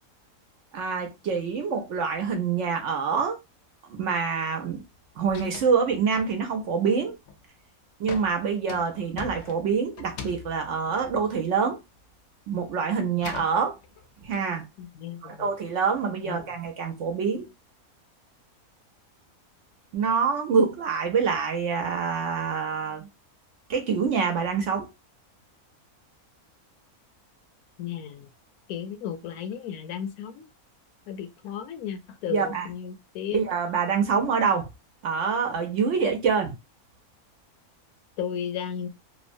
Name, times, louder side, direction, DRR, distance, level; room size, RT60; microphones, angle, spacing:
voice 1, 0.7-3.4 3.9-4.8 5.2-7.2 8.0-11.8 12.5-13.8 14.2-14.7 15.2-17.5 19.9-23.1 23.7-24.9 32.3-32.7 33.3-34.7 35.0-36.5, right 6 dB, 65° right, 0.9 m, -26 dB
sound 1, 4.7-5.0 5.2-5.8 6.1-6.6 7.1-7.5 8.1-12.1 12.4-14.4, left 5 dB, 65° left, 0.7 m, -42 dB
voice 2, 14.8-15.5 16.2-16.5 27.8-28.3 28.7-30.4 31.1-33.4 38.2-38.9, left 8 dB, 85° left, 1.1 m, -34 dB
3.0 x 2.1 x 2.5 m
omnidirectional pair, 1.5 m